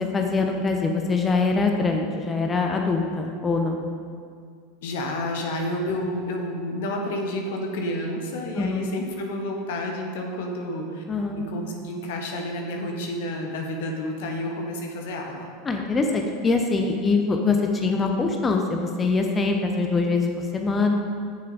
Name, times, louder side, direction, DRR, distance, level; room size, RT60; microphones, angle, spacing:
voice 1, 0.0-3.8 8.6-8.9 11.1-11.5 15.6-20.9, left 3 dB, 25° left, 3 dB, 0.8 m, -23 dB
voice 2, 4.8-11.0 11.3-15.5, left 1 dB, 65° left, 2 dB, 1.1 m, -30 dB
8.4 x 6.7 x 4.1 m, 2.1 s
hypercardioid pair, 85°, 0 cm